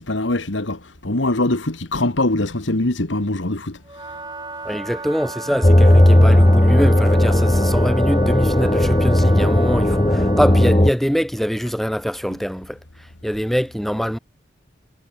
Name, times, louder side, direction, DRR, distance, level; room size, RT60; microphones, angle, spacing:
voice 1, 0.0-3.8, left 2 dB, 85° left, 2.0 m, -22 dB
Wind instrument woodwind instrument, 3.8-10.9, right 3 dB, 20° right, 4.1 m, -34 dB
voice 2, 4.6-12.8 13.2-14.2, equal, ahead, 4.6 m, -23 dB
sound 1, 5.6-10.9, left 1 dB, 25° left, 1.1 m, -15 dB
head